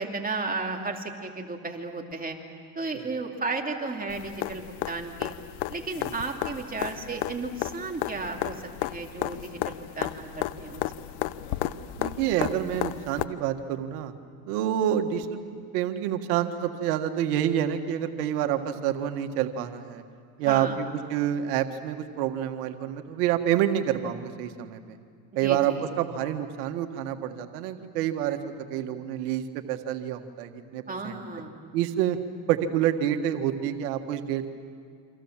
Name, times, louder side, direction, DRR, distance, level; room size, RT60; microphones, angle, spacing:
voice 1, 0.0-2.4 2.7-5.3 5.7-10.8 20.4-20.8 25.4-25.8 30.9-31.7, right 3 dB, 20° right, 2 dB, 2.9 m, -34 dB
sound 1, 4.1-13.2 15.2-15.3, left 15 dB, 80° left, 1.0 m, -33 dB
voice 2, 12.0-14.1 14.5-20.0 20.4-25.0 25.4-28.4 28.7-31.2 31.7-32.2 32.5-34.5, right 10 dB, 90° right, 7 dB, 1.7 m, -28 dB
28.5 x 26.0 x 7.4 m, 2.1 s
supercardioid pair, 105°, 45 cm